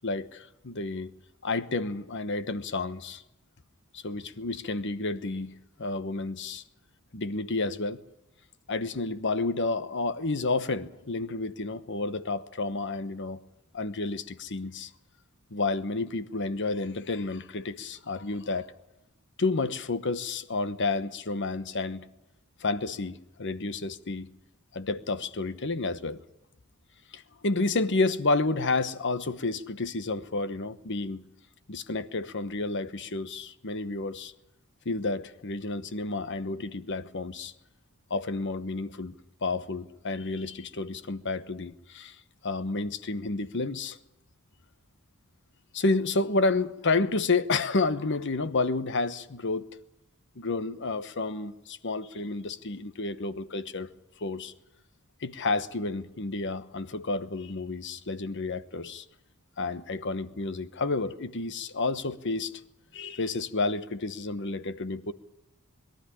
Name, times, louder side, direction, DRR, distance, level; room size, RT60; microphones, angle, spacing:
voice 1, 0.0-1.1 1.4-3.2 3.9-6.6 7.1-8.0 8.7-13.4 13.7-14.9 15.5-18.7 19.4-22.1 22.6-24.3 24.7-26.2 27.1-31.2 31.7-34.3 34.8-37.5 38.1-39.1 39.4-42.2 42.4-44.0 45.7-49.7 50.4-53.9 54.2-54.5 55.2-59.0 59.6-62.5 62.9-65.1, left 3 dB, 55° left, 1.1 m, -30 dB
22.0 x 13.0 x 10.0 m
head